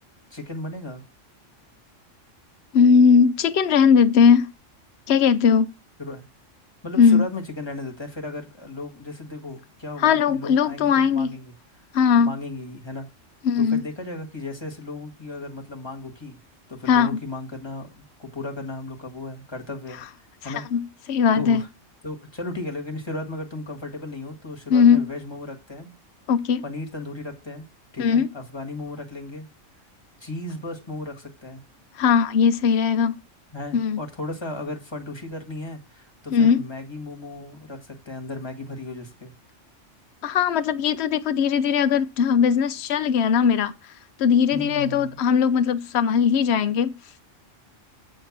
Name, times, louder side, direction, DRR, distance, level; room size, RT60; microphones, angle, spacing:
voice 1, 0.3-1.0 6.0-6.2 6.8-11.5 12.2-13.1 13.6-16.4 16.7-20.6 21.3-21.7 22.0-25.9 26.6-27.7 27.9-29.5 30.2-31.6 33.5-39.3 44.5-45.2, left 2 dB, 20° left, 1.7 m, -35 dB
voice 2, 2.7-4.5 5.1-5.7 7.0-7.3 10.0-11.3 11.9-12.3 13.4-13.8 16.9-17.2 20.4-20.8 21.1-21.6 24.7-25.1 26.3-26.6 28.0-28.3 32.0-33.2 33.7-34.0 36.3-36.6 40.2-43.7 44.2-46.9, left 6 dB, 65° left, 0.9 m, -19 dB
8.6 x 4.5 x 7.2 m
omnidirectional pair, 1.3 m